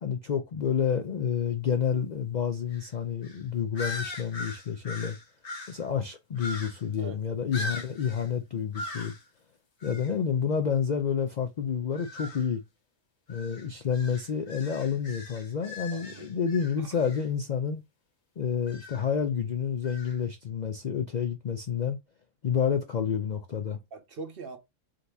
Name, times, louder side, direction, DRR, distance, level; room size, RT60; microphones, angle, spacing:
voice 1, 0.0-5.2 5.7-9.1 9.8-12.6 13.3-17.8 18.4-22.0 22.4-23.8, left 7 dB, 85° left, 0.3 m, -29 dB
sound 1, 2.7-2.9 3.2-3.4 3.7-5.8 6.4-6.9 7.5-8.3 8.7-9.2 9.8-10.1 11.9-12.5 13.3-17.2 18.7-19.1 19.8-20.2, left 2 dB, 55° left, 1.4 m, -40 dB
voice 2, 15.9-16.3 16.8-16.9 23.9-24.6, right 3 dB, 50° right, 0.9 m, -42 dB
3.8 x 2.7 x 4.6 m
omnidirectional pair, 1.5 m